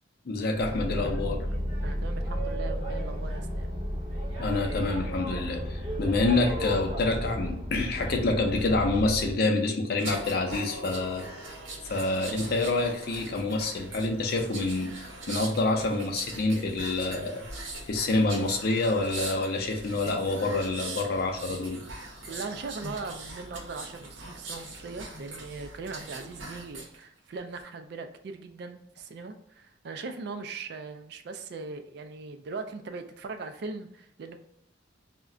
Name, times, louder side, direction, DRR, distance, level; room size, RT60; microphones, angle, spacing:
voice 1, 0.3-1.5 4.4-11.2 11.8-17.4 17.9-21.8, left 2 dB, 50° left, 4 dB, 0.4 m, -27 dB
Boat Water vehicle, 0.5-9.4, equal, 25° right, 0.7 m, -33 dB
voice 2, 1.8-3.7 22.3-34.4, right 4 dB, 55° right, 8 dB, 0.3 m, -40 dB
sound 1, 10.0-27.0 27.4-27.6, right 2 dB, 80° right, 0.7 m, -41 dB
2.4 x 2.1 x 3.7 m, 0.75 s
head